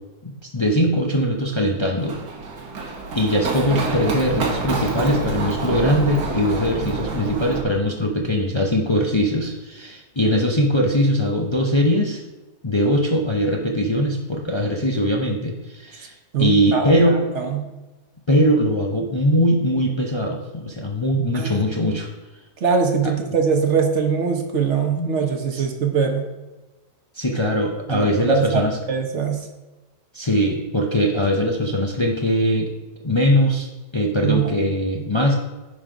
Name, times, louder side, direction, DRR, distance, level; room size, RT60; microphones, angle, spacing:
voice 1, 0.2-2.2 3.1-12.2 12.6-17.3 18.3-22.1 23.0-23.1 25.0-25.1 25.5-25.7 27.1-28.8 30.1-32.7 33.0-33.7 33.9-35.3, equal, 35° left, 0 dB, 0.4 m, -21 dB
Run, 2.0-7.6, right 3 dB, 75° right, 1.6 m, -27 dB
voice 2, 16.3-17.0 17.4-17.6 21.3-21.7 22.6-26.2 27.9-29.5 34.2-34.5, right 6 dB, 50° right, 4 dB, 1.2 m, -22 dB
9.9 x 3.9 x 5.0 m, 1.1 s
omnidirectional pair, 1.7 m